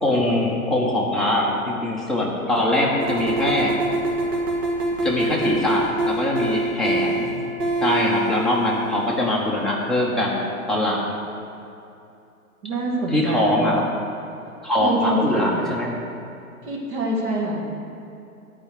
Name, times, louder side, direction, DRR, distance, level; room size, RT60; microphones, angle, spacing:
voice 1, 0.0-3.7 5.0-7.3 7.8-10.4 10.7-11.2 13.1-13.8 14.6-15.9, left 1 dB, ahead, -5 dB, 0.6 m, -22 dB
sound 1, 3.0-9.9, right 2 dB, 90° right, 2.1 m, -26 dB
voice 2, 12.6-13.6 14.8-15.7 16.6-17.7, right 1 dB, 50° right, -2 dB, 2.3 m, -25 dB
10.0 x 4.9 x 7.9 m, 2.7 s
hypercardioid pair, 130°, 45 cm